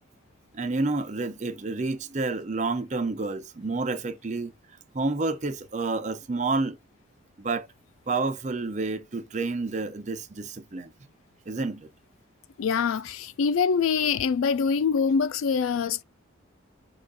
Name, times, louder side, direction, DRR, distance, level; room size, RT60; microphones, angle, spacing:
voice 1, 0.5-4.5 4.9-6.8 7.4-7.7 8.1-10.9 11.5-11.9, right 3 dB, 35° right, 0.5 m, -29 dB
voice 2, 12.6-16.0, left 6 dB, 85° left, 0.3 m, -24 dB
4.8 x 2.4 x 3.9 m
head